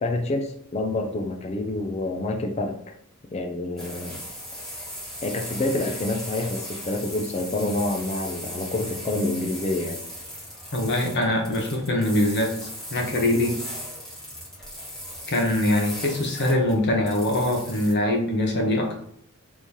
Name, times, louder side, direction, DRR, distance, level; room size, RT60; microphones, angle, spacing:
voice 1, 0.0-2.8 3.3-4.2 5.2-10.0, left 2 dB, 30° left, 4 dB, 0.3 m, -27 dB
sound 1, 3.8-17.9, equal, 5° left, 1.0 m, -38 dB
voice 2, 10.7-12.6 12.9-13.6 15.3-18.9, left 1 dB, 50° left, 1 dB, 0.7 m, -23 dB
3.6 x 3.1 x 2.7 m, 0.66 s
head